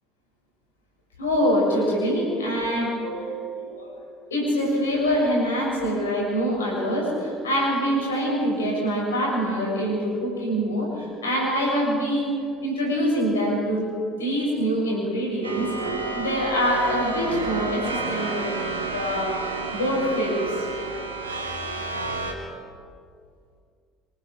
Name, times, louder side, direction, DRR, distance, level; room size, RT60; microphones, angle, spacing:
voice 1, 1.2-4.0 4.3-12.3 12.6-13.8 14.1-15.7 16.1-19.4 19.7-20.7, equal, 85° left, -2 dB, 7.0 m, -25 dB
sound 1, 15.4-22.3, right 3 dB, 90° right, 2.7 m, -30 dB
27.5 x 23.0 x 4.8 m, 2.2 s
figure-of-eight pair, 60°, 0 cm